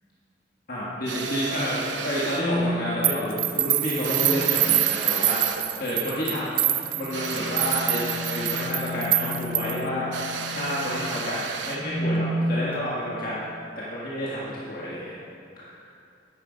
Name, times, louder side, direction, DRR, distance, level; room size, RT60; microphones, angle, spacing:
voice 1, 0.7-13.4 13.8-15.1 15.6-15.9, equal, 50° left, -7 dB, 1.6 m, -30 dB
sound 1, 1.1-2.5 4.0-5.7 7.1-8.8 10.1-11.9, right 5 dB, 80° right, 0.8 m, -34 dB
sound 2, 2.4-2.8 4.1-4.7 6.9-11.0 11.7-12.4, left 1 dB, 10° left, 0.9 m, -33 dB
sound 3, 3.0-9.9, right 13 dB, 45° right, 0.4 m, -25 dB
10.0 x 9.3 x 5.1 m, 2.5 s
head